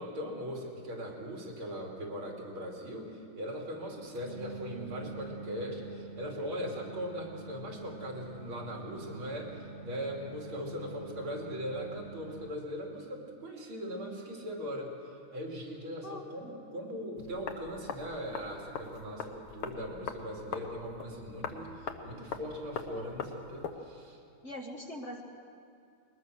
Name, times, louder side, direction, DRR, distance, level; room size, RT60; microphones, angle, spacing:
voice 1, 0.0-14.9 15.3-24.2, equal, 80° right, -1 dB, 3.8 m, -40 dB
sound 1, 3.8-12.5, right 4 dB, 25° right, 1.6 m, -47 dB
voice 2, 16.0-16.6 22.9-23.1 24.4-25.2, left 1 dB, 40° left, 2 dB, 1.4 m, -43 dB
sound 2, 17.2-23.8, left 6 dB, 85° left, 1.9 m, -42 dB
21.5 x 20.0 x 6.4 m, 2.4 s
omnidirectional pair, 2.3 m